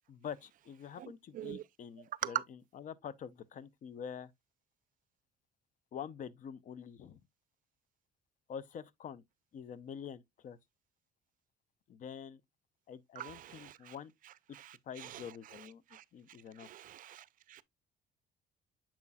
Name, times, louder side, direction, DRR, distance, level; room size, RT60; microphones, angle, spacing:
voice 1, 0.1-4.3 5.9-7.2 8.5-9.2 9.5-10.6 11.9-12.4 12.9-14.1 14.9-16.7, left 8 dB, 50° left, 0.6 m, -46 dB
voice 2, 1.0-1.6 2.2-2.3 13.2-13.9 14.5-14.7 15.0-15.2 15.9-16.0 16.6-17.6, right 12 dB, 55° right, 0.5 m, -45 dB
7.3 x 5.6 x 2.3 m
cardioid pair, 110°, 17 cm